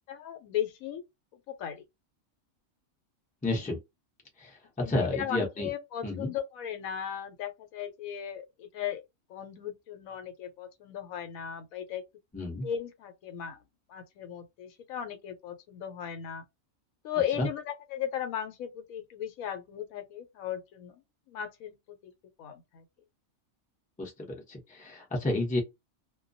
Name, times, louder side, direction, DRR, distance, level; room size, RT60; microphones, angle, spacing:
voice 1, 0.1-1.0 1.5-1.8 4.8-9.0 9.3-12.0 12.6-13.6 13.9-16.4 17.0-21.0 21.3-22.1 22.4-22.8, left 9 dB, 80° left, 1.0 m, -36 dB
voice 2, 3.4-3.8 4.4-4.6 4.9-5.7 6.0-6.3 12.3-12.7 17.4-17.5 24.0-25.6, left 2 dB, 10° left, 0.5 m, -31 dB
2.3 x 2.2 x 2.5 m
omnidirectional pair, 1.4 m